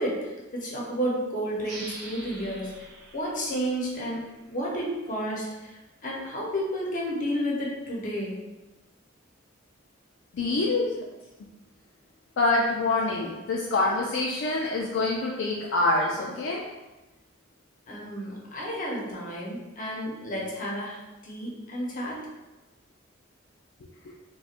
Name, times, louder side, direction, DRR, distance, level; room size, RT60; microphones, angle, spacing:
voice 1, 0.0-2.9 3.1-5.8 6.0-8.4 17.9-21.0 21.2-22.3, equal, 45° left, -4 dB, 0.8 m, -31 dB
sound 1, 1.6-4.9, right 2 dB, 55° right, 0.7 m, -45 dB
voice 2, 10.3-11.0 12.4-16.7 24.0-24.1, left 2 dB, 70° left, -2 dB, 0.4 m, -26 dB
4.2 x 2.3 x 2.4 m, 1.1 s
head